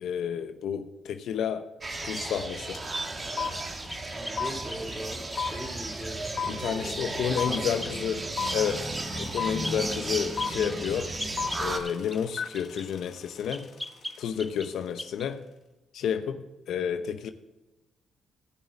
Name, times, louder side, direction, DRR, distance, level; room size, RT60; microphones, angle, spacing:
voice 1, 0.0-1.7 2.0-2.8 6.5-8.9 9.2-11.1 11.6-13.7 14.2-15.4 15.9-17.3, left 8 dB, 75° left, 0.9 m, -30 dB
sound 1, 1.8-11.8, right 2 dB, 30° right, 1.9 m, -34 dB
sound 2, 2.7-2.8 3.0-14.2, left 7 dB, 60° left, 1.7 m, -35 dB
sound 3, 3.5-5.5 7.5-8.0 8.5-8.7 8.9-9.3 9.6-12.9 13.5-14.7 15.0-15.3, left 1 dB, 5° left, 0.6 m, -40 dB
voice 2, 4.1-6.9 7.2-8.1, equal, 10° right, 3.3 m, -40 dB
18.5 x 6.4 x 4.0 m
cardioid pair, 90°, 0 cm